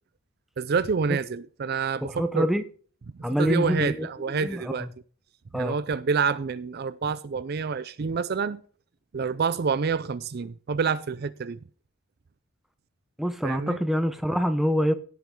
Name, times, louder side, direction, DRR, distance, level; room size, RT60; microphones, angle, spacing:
voice 1, 0.6-2.5 3.4-4.9 5.5-8.6 9.1-11.6 13.4-13.8, right 5 dB, 50° right, 0.4 m, -27 dB
voice 2, 2.1-2.6 3.2-4.9 5.5-5.8 13.2-14.9, equal, ahead, 0.8 m, -26 dB
16.5 x 5.8 x 3.7 m
head